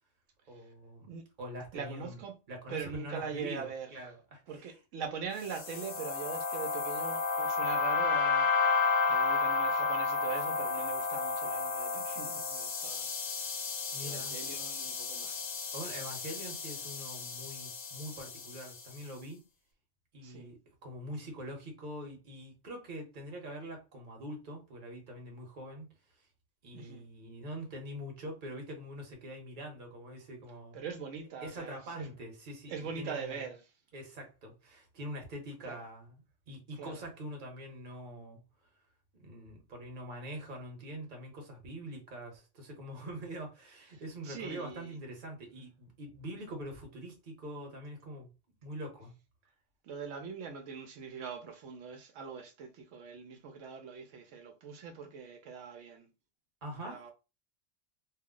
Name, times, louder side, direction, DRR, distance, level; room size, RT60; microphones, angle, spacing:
voice 1, 0.5-1.1 1.4-2.2 2.5-4.7 13.9-14.4 15.7-19.4 20.1-25.9 26.6-30.8 31.4-33.4 33.9-36.2 36.5-38.4 39.1-48.3 48.6-49.1 56.6-57.0, equal, 45° right, 1.0 m, -44 dB
voice 2, 1.7-2.4 2.7-3.9 4.5-8.8 9.0-13.1 14.0-15.5 20.2-20.5 26.7-27.1 30.7-32.1 32.7-33.7 35.7-35.8 36.8-37.0 44.2-45.0 49.8-56.1 56.8-57.1, right 6 dB, 90° right, 1.0 m, -42 dB
sound 1, 5.4-18.8, left 4 dB, 65° left, 0.9 m, -32 dB
2.6 x 2.0 x 3.6 m
omnidirectional pair, 1.3 m